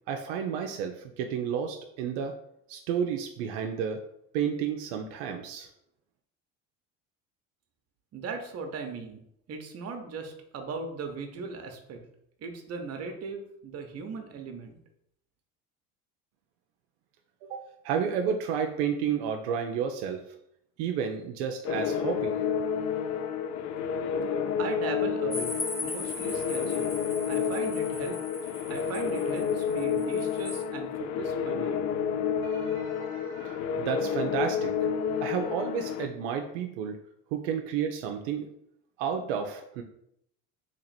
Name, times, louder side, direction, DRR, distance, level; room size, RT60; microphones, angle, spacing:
voice 1, 0.1-2.3 2.7-4.0 4.3-5.7 17.4-20.2 20.8-22.4 32.4-34.7 35.2-37.0 37.3-38.5 39.0-39.8, right 7 dB, 85° right, 4 dB, 0.5 m, -31 dB
voice 2, 8.1-9.2 9.5-12.0 12.4-14.8 24.6-25.6 25.8-26.9 27.3-28.2 28.7-31.9, right 4 dB, 45° right, 5 dB, 0.9 m, -38 dB
sound 1, 21.6-36.1, left 7 dB, 50° left, 0.4 m, -30 dB
sound 2, 25.3-30.6, left 2 dB, 15° left, 0.9 m, -39 dB
2.9 x 2.9 x 4.1 m, 0.75 s
supercardioid pair, 80°, 34 cm